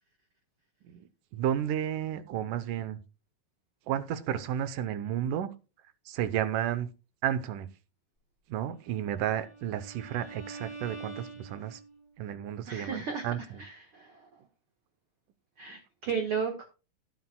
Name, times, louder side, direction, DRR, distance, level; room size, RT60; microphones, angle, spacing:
voice 1, 1.3-3.0 3.9-5.5 6.1-6.9 7.2-7.7 8.5-11.8 12.2-13.6, right 10 dB, 75° right, 2.2 m, -32 dB
Bowed string instrument, 9.0-12.1, right 3 dB, 10° right, 4.2 m, -45 dB
voice 2, 12.6-14.3 15.6-16.6, right 6 dB, 55° right, 1.6 m, -34 dB
16.5 x 8.5 x 2.2 m
omnidirectional pair, 4.1 m